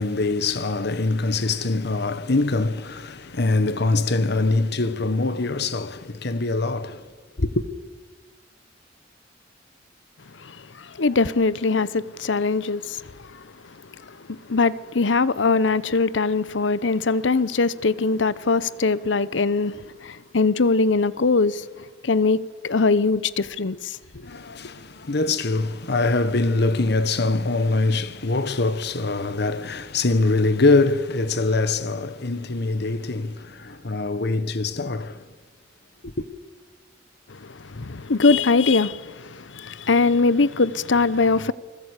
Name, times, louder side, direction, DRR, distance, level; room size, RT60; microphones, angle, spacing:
voice 1, 0.0-7.1 7.4-7.7 24.2-35.2 36.0-36.2, left 3 dB, 65° left, 1.2 m, -23 dB
voice 2, 10.3-13.5 14.0-24.0 37.3-41.5, left 4 dB, 80° left, 0.8 m, -22 dB
29.0 x 21.0 x 8.3 m
head